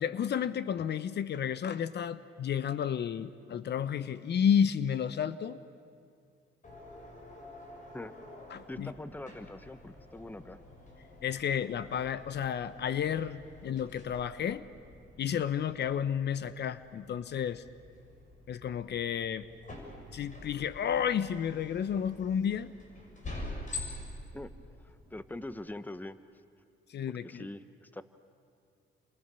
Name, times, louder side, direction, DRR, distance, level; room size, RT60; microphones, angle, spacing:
voice 1, 0.0-5.6 8.5-8.9 11.2-14.6 15.2-17.6 18.5-19.5 20.1-22.7 26.9-27.5, left 8 dB, 60° left, 14 dB, 0.9 m, -31 dB
sound 1, 6.6-25.5, left 2 dB, 40° left, 7.0 m, -47 dB
voice 2, 8.7-10.6 24.3-24.5 24.8-26.2 27.2-28.0, left 1 dB, 10° left, 12 dB, 1.1 m, -43 dB
29.5 x 26.0 x 7.0 m, 2.3 s
cardioid pair, 90°, 20 cm